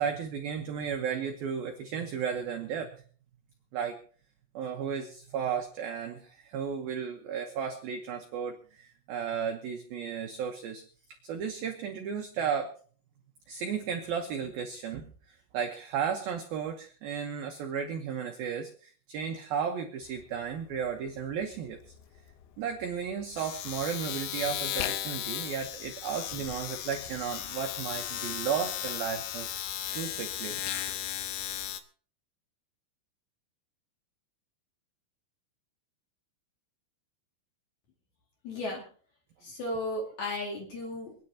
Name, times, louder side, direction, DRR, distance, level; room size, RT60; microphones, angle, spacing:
voice 1, 0.0-3.0 3.7-4.0 4.5-10.8 11.2-12.7 13.5-21.8 22.6-29.6 29.9-30.6, right 7 dB, 75° right, 4 dB, 2.2 m, -34 dB
Domestic sounds home sounds, 20.0-20.2 20.5-31.8, left 12 dB, 85° left, 2.2 m, -36 dB
voice 2, 38.4-38.8 39.4-41.2, left 1 dB, 45° left, 0 dB, 2.9 m, -35 dB
28.0 x 9.9 x 2.8 m, 0.43 s
omnidirectional pair, 5.8 m